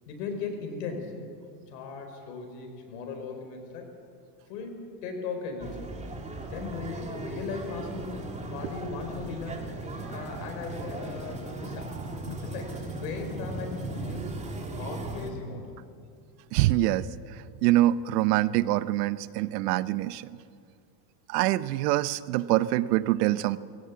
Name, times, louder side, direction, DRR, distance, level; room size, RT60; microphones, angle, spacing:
voice 1, 0.1-1.2 1.7-3.9 4.5-5.8 6.5-9.7 10.1-12.0 12.2-14.5 14.7-15.7, left 4 dB, 80° left, 4 dB, 4.8 m, -38 dB
sound 1, 5.6-15.3, right 2 dB, 15° right, 2.4 m, -37 dB
voice 2, 16.5-17.1 17.6-20.3 21.3-23.6, right 15 dB, 75° right, 16 dB, 0.9 m, -24 dB
19.5 x 16.5 x 8.5 m, 2.4 s
supercardioid pair, 130°, 48 cm